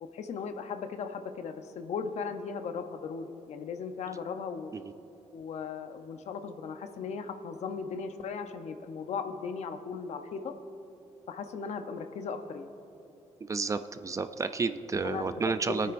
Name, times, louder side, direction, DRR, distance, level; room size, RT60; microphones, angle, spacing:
voice 1, 0.0-4.7 5.3-10.5 11.3-12.7 15.0-15.3 15.6-15.9, left 5 dB, 70° left, 8 dB, 0.7 m, -37 dB
voice 2, 13.4-15.9, right 4 dB, 25° right, 11 dB, 0.4 m, -31 dB
22.0 x 9.4 x 2.6 m, 3.0 s
wide cardioid pair, 155°, 12 cm